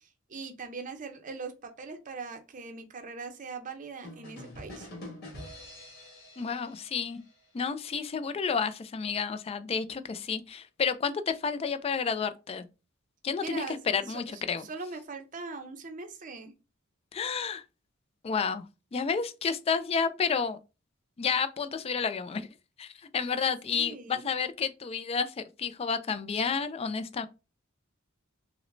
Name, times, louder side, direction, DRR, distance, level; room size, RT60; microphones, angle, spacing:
voice 1, 0.0-4.9 13.4-16.5 23.4-24.3, right 4 dB, 40° right, 0.6 m, -41 dB
sound 1, 4.0-7.8, left 1 dB, 55° left, 1.8 m, -46 dB
voice 2, 6.4-7.2 7.5-12.7 13.2-14.7 17.1-17.6 18.2-18.6 18.9-20.6 21.2-22.5 22.8-27.3, left 5 dB, 30° left, 0.3 m, -30 dB
5.7 x 2.1 x 2.6 m
head